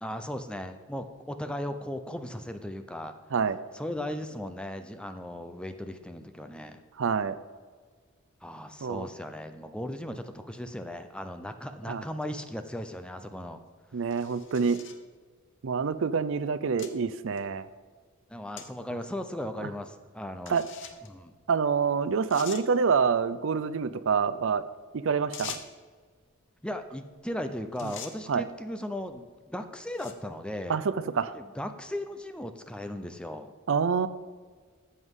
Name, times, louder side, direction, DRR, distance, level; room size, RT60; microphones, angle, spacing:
voice 1, 0.0-3.1 3.7-6.8 8.4-13.6 18.3-20.6 21.1-21.3 26.6-30.8 31.3-33.5, left 1 dB, 5° left, 8 dB, 0.6 m, -37 dB
voice 2, 7.0-7.3 8.8-9.1 11.9-12.0 13.9-14.8 15.6-17.7 19.6-19.7 20.5-20.6 21.5-24.6 24.9-25.6 27.8-27.9 28.3-28.4 30.7-31.3 33.7-34.1, right 5 dB, 65° right, 14 dB, 0.5 m, -27 dB
sound 1, 14.1-15.0 15.8-15.9 16.8-16.9 17.4-17.5 18.6-18.7 19.0-19.1 20.4-21.1 21.8-21.9 22.3-22.7 25.3-25.9 27.2-27.4 27.7-28.2 29.0-29.2 29.8-30.3, left 8 dB, 60° left, 0.9 m, -43 dB
13.5 x 7.9 x 3.7 m, 1.5 s
head